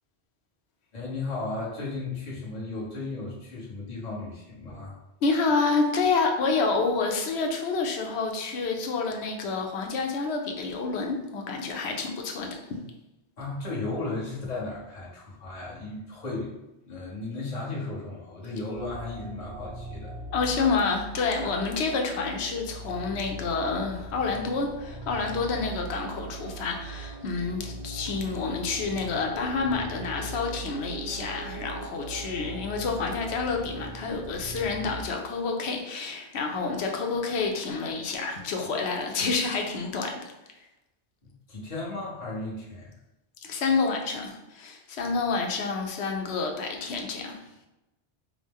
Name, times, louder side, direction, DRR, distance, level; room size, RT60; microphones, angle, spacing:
voice 1, 0.9-5.0 13.4-16.5 16.9-20.1 21.4-21.5 41.2-42.9, left 2 dB, 40° left, -6 dB, 1.2 m, -35 dB
voice 2, 5.2-12.8 20.3-40.3 43.4-47.4, left 4 dB, 85° left, 3 dB, 0.9 m, -28 dB
Dark Ambient Music, 18.7-35.0, right 2 dB, 70° right, 0.7 m, -40 dB
4.8 x 2.0 x 3.5 m, 0.94 s
omnidirectional pair, 1.1 m